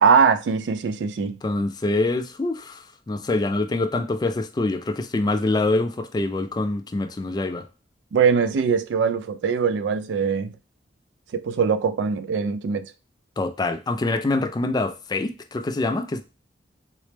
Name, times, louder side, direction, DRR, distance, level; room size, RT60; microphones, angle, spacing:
voice 1, 0.0-1.4 8.1-10.5 11.3-12.9, right 6 dB, 80° right, 0.3 m, -21 dB
voice 2, 1.4-7.7 13.4-16.2, left 2 dB, 25° left, 0.3 m, -25 dB
4.1 x 2.0 x 3.2 m
head